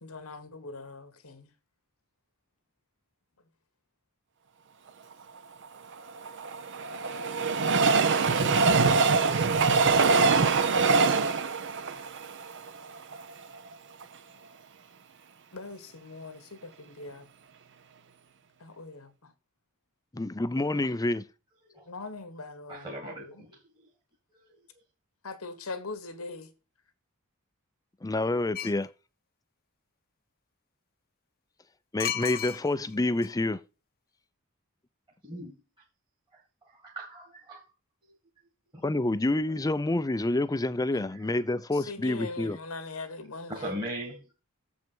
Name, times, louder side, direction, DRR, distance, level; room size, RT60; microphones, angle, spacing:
voice 1, 0.0-1.5 15.5-17.3 18.6-19.3 21.9-23.5 25.2-26.5 40.9-41.1 41.7-43.7, left 3 dB, 85° left, 1.5 m, -41 dB
Train, 5.9-13.2 13.7-13.8 14.0-14.1, right 4 dB, 60° right, 0.8 m, -24 dB
voice 2, 20.1-21.2 28.0-28.9 31.9-33.6 38.8-42.6, left 2 dB, 15° left, 0.5 m, -28 dB
voice 3, 22.7-23.6 24.3-24.4 35.2-35.5 36.3-36.4 36.7-37.6 38.7-38.8 43.5-44.3, right 1 dB, 20° right, 1.9 m, -39 dB
sound 1, 28.5-28.9 32.0-32.9 33.2-33.3, left 10 dB, 45° left, 0.8 m, -33 dB
7.4 x 5.3 x 6.1 m
head